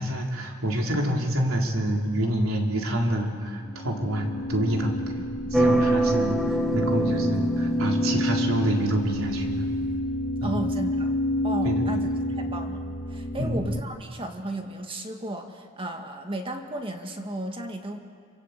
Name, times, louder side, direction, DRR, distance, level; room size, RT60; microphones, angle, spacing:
voice 1, 0.0-5.1 5.5-9.7 10.4-10.7 11.6-12.0 13.4-13.8, right 1 dB, 80° right, 1 dB, 3.9 m, -27 dB
sound 1, 3.7-13.8, left 1 dB, 25° left, 0.9 m, -28 dB
sound 2, 5.5-9.3, right 2 dB, ahead, 1.6 m, -26 dB
voice 2, 10.4-11.1 11.4-12.1 12.4-18.0, right 1 dB, 25° right, 4 dB, 1.9 m, -34 dB
27.0 x 27.0 x 8.3 m, 2.1 s
head